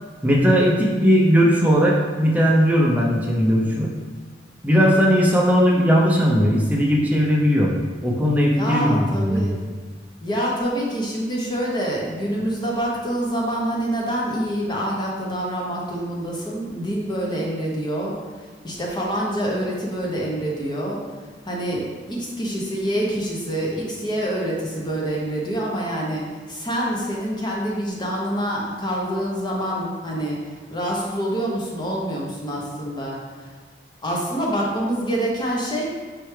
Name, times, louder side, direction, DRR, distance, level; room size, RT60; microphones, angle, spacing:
voice 1, 0.2-3.9 4.6-7.7 8.0-9.5, equal, 10° right, -2 dB, 0.6 m, -18 dB
voice 2, 8.5-9.6 10.2-18.1 18.6-21.0 21.4-30.4 30.7-33.5 34.0-35.8, equal, 25° left, -3 dB, 0.8 m, -26 dB
4.5 x 3.3 x 3.2 m, 1.5 s
head